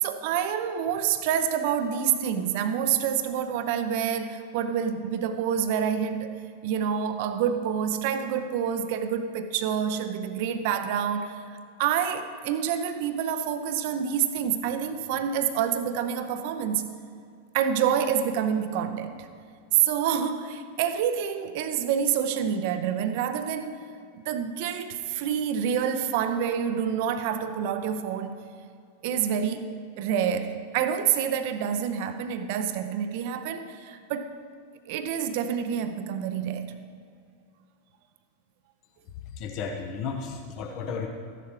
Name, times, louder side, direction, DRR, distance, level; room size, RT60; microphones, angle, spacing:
voice 1, 0.0-6.3 6.6-11.4 11.8-16.9 17.5-19.3 19.7-23.9 24.2-28.4 29.0-34.3 34.9-36.7, right 8 dB, 50° right, 9 dB, 0.7 m, -27 dB
voice 2, 39.4-41.1, left 5 dB, 40° left, 2 dB, 1.0 m, -33 dB
14.0 x 11.0 x 3.2 m, 2.3 s
figure-of-eight pair, 90°, 0 cm